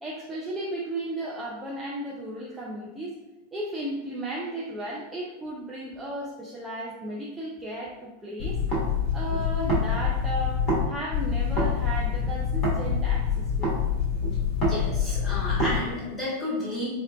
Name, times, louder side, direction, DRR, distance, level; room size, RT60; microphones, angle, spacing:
voice 1, 0.0-3.1 3.5-8.6 9.1-10.6 10.8-13.9 15.0-15.2, right 1 dB, 10° right, -5 dB, 0.4 m, -35 dB
sound 1, 8.4-10.8 11.1-15.8, left 5 dB, 30° left, 1.2 m, -26 dB
voice 2, 14.6-16.9, left 1 dB, 10° left, -7 dB, 1.3 m, -32 dB
4.3 x 2.3 x 2.2 m, 1.1 s
figure-of-eight pair, 90°, 0 cm